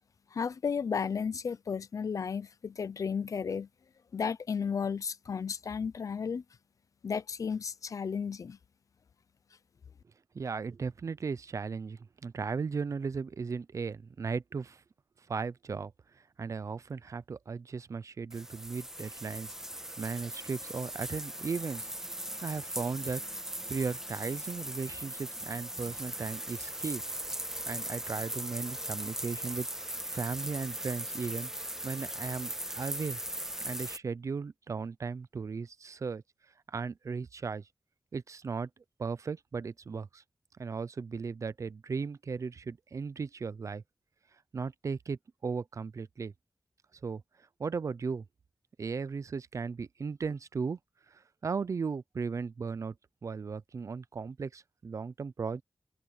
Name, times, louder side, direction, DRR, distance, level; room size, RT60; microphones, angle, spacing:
voice 1, 0.3-3.7 4.1-6.4 7.0-8.6, left 6 dB, 85° left, 0.6 m, -33 dB
voice 2, 10.3-14.8 15.3-15.9 16.4-19.5 20.0-21.9 22.4-23.2 23.7-27.0 27.7-31.5 31.8-32.5 32.8-33.2 33.6-36.2 36.7-37.6 38.1-38.7 39.0-40.2 40.6-43.8 44.5-46.3 47.0-47.2 47.6-48.2 48.8-50.8 51.1-52.9 53.2-55.6, right 5 dB, 70° right, 0.6 m, -36 dB
sound 1, 18.3-34.0, right 1 dB, 10° right, 1.5 m, -39 dB
wide cardioid pair, 85°, 6 cm